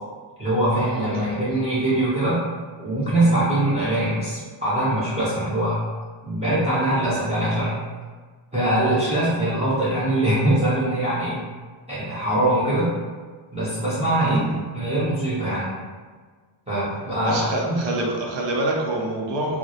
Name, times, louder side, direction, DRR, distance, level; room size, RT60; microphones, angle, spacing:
voice 1, 0.4-2.4 2.8-5.8 6.2-7.8 8.5-11.4 11.9-13.0 13.5-14.5 14.7-15.7 16.7-17.8, right 1 dB, 15° right, -11 dB, 0.6 m, -22 dB
voice 2, 14.2-14.6 17.2-19.6, right 1 dB, 60° right, -2 dB, 0.7 m, -26 dB
2.2 x 2.0 x 2.8 m, 1.5 s
cardioid pair, 145°, 49 cm